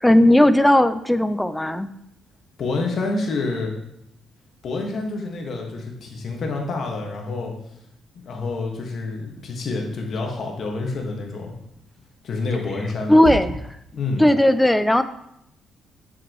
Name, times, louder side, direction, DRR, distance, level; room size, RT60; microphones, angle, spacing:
voice 1, 0.0-1.9 13.1-13.6 14.2-15.0, left 1 dB, 5° left, 12 dB, 0.4 m, -16 dB
voice 2, 2.6-3.7 4.6-7.5 8.2-11.5 12.2-13.1 13.9-14.2, left 3 dB, 60° left, 1 dB, 1.6 m, -28 dB
sound 1, 9.1-14.1, right 2 dB, 80° right, 1.7 m, -40 dB
7.8 x 5.9 x 3.1 m, 0.76 s
cardioid pair, 90°, 0 cm